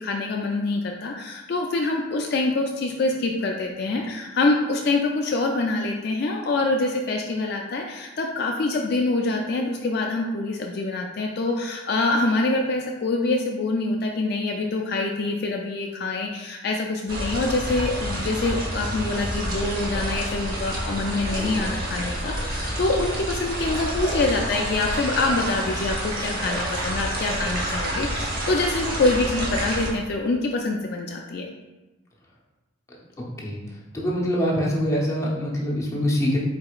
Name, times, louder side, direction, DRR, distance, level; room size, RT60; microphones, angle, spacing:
voice 1, 0.0-31.5, left 2 dB, 50° left, 1 dB, 0.3 m, -25 dB
sound 1, 17.1-29.9, right 1 dB, 45° right, 0.8 m, -29 dB
voice 2, 33.9-36.4, equal, 15° left, -5 dB, 0.7 m, -24 dB
4.7 x 4.1 x 2.4 m, 1.1 s
head